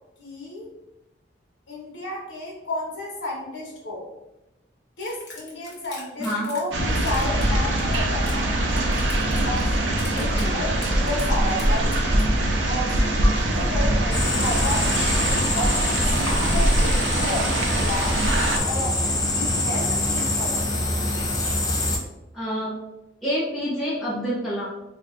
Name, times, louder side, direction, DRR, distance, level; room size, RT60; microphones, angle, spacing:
voice 1, 0.2-0.7 1.7-4.1 5.0-8.5 9.4-11.9 12.7-14.9 15.5-18.2 18.7-20.6, left 1 dB, 85° left, -2 dB, 1.0 m, -32 dB
sound 1, 5.0-6.8 7.0-8.4 8.7-9.7 10.0-10.5 10.8-12.2, left 3 dB, 55° left, 1.0 m, -41 dB
sound 2, 6.7-18.6, right 1 dB, 85° right, 0.6 m, -23 dB
voice 2, 10.1-10.6 13.7-13.9 16.3-16.5 22.3-22.8 23.2-24.6, equal, ahead, -11 dB, 0.9 m, -28 dB
sound 3, 14.1-22.0, left 2 dB, 20° left, 0.5 m, -25 dB
3.6 x 2.6 x 2.5 m, 0.96 s
head